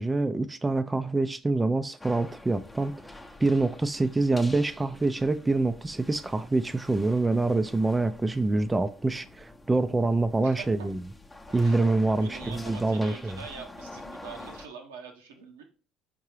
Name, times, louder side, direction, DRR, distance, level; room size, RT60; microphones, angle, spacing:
voice 1, 0.0-3.1 3.4-11.0 11.5-13.4, right 2 dB, 20° right, 0.4 m, -26 dB
sound 1, 2.0-14.7, left 2 dB, 15° left, 0.7 m, -46 dB
voice 2, 10.4-10.9 11.5-15.6, right 6 dB, 90° right, 0.8 m, -44 dB
4.6 x 3.6 x 3.1 m
hypercardioid pair, 60°, 0 cm